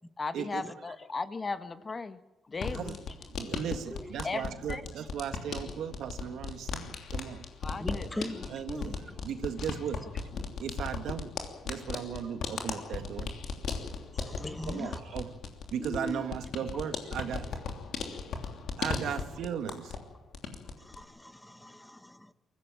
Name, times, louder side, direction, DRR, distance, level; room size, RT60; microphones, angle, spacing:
voice 1, 0.2-2.2 2.5-3.0 4.2-4.8 7.6-8.1 8.7-8.9 14.4-14.9, left 4 dB, 30° left, 11 dB, 1.3 m, -37 dB
sound 1, 2.5-20.1 20.3-21.0, left 5 dB, 65° left, 3.0 m, -37 dB
voice 2, 3.3-7.5 8.5-10.1 10.6-11.3 11.6-13.3 14.7-15.3 15.7-17.6 18.8-20.0, right 8 dB, 75° right, 8 dB, 1.8 m, -36 dB
voice 3, 7.8-8.4 10.0-10.1 14.1-15.0 15.8-16.3 20.8-22.3, left 1 dB, 10° left, 12 dB, 1.3 m, -40 dB
23.0 x 15.5 x 9.0 m, 1.0 s
cardioid pair, 90°, 0 cm